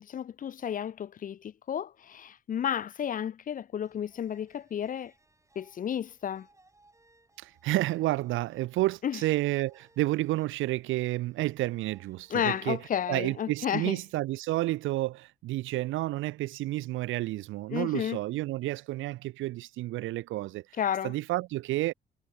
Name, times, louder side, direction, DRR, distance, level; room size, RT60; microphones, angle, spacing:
voice 1, 0.0-5.1 5.6-6.5 9.0-9.2 12.3-14.0 17.7-18.2 20.8-21.1, left 9 dB, 45° left, 0.5 m, -32 dB
sound 1, 3.8-13.6, right 2 dB, 15° right, 5.0 m, -65 dB
voice 2, 7.4-12.8 13.1-20.6 21.0-21.9, right 17 dB, 80° right, 0.5 m, -30 dB
cardioid pair, 90°, 20 cm